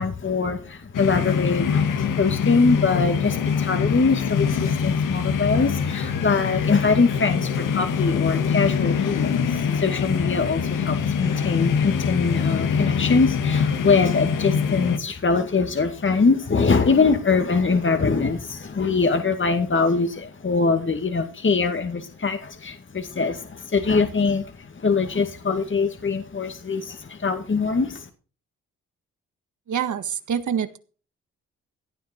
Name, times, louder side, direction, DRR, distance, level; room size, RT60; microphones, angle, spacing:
voice 1, 0.0-28.1, left 4 dB, 35° left, 7 dB, 2.1 m, -23 dB
sound 1, 0.9-15.0, left 6 dB, 70° left, 2.2 m, -24 dB
voice 2, 29.7-30.8, right 8 dB, 60° right, 11 dB, 1.8 m, -26 dB
17.0 x 9.5 x 4.5 m, 0.38 s
supercardioid pair, 55°, 33 cm